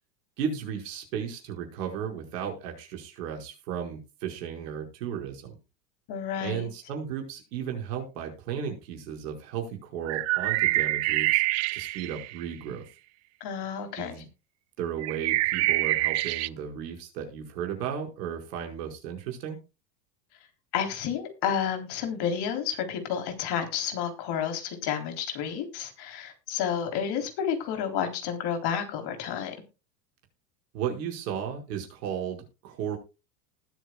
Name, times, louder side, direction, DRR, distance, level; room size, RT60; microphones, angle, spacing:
voice 1, 0.4-5.6 6.4-11.4 11.7-12.8 14.0-14.3 14.8-19.6 30.7-33.0, right 8 dB, 70° right, 3 dB, 5.2 m, -34 dB
voice 2, 6.1-6.7 13.4-14.2 20.7-29.6, left 8 dB, 50° left, 6 dB, 3.6 m, -30 dB
sound 1, 10.1-12.4 15.0-16.5, right 19 dB, 35° right, 0.5 m, -26 dB
20.0 x 7.6 x 2.3 m, 0.28 s
hypercardioid pair, 95°, 50 cm